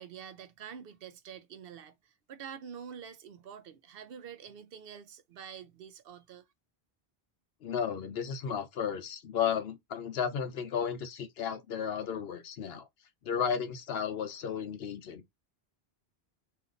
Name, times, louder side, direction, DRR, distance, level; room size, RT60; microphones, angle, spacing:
voice 1, 0.0-6.5, right 8 dB, 70° right, 0.7 m, -47 dB
voice 2, 7.6-12.9 13.2-15.2, left 7 dB, 75° left, 0.9 m, -33 dB
2.7 x 2.5 x 3.7 m
omnidirectional pair, 1.0 m